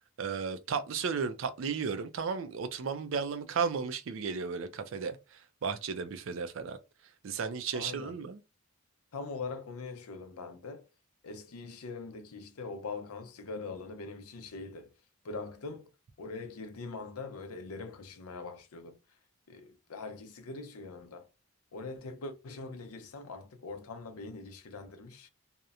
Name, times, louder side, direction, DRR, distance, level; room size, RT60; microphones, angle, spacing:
voice 1, 0.2-6.8 7.2-8.4, right 5 dB, 60° right, 0.4 m, -34 dB
voice 2, 7.7-8.1 9.1-10.9 11.2-14.9 15.2-15.9 16.2-19.0 19.5-21.3 21.7-25.3, left 3 dB, 80° left, 0.5 m, -42 dB
2.8 x 2.1 x 2.4 m
head